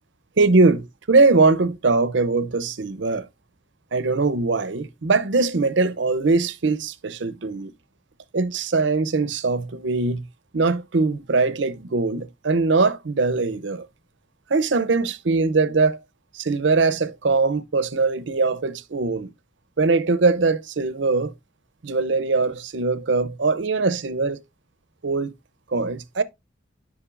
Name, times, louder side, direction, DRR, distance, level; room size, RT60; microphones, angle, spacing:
voice 1, 0.4-3.2 3.9-7.7 8.3-10.2 10.5-13.9 14.5-16.0 16.3-19.3 19.8-21.3 21.8-24.4 25.0-25.3 25.7-26.2, right 3 dB, 70° right, 0.7 m, -21 dB
10.0 x 5.3 x 2.5 m
head